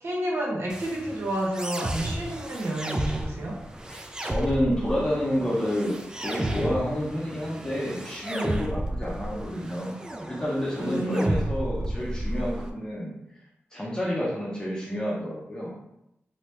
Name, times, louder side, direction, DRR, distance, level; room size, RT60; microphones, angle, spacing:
voice 1, 0.0-3.6 10.8-11.5, right 1 dB, 65° right, -3 dB, 0.9 m, -30 dB
sound 1, 0.7-12.7, right 1 dB, 15° right, 0.3 m, -33 dB
voice 2, 3.9-6.0 6.2-10.0 10.3-13.1 13.7-15.7, equal, 15° left, -7 dB, 0.7 m, -29 dB
2.8 x 2.7 x 3.3 m, 0.86 s
wide cardioid pair, 110°, 5 cm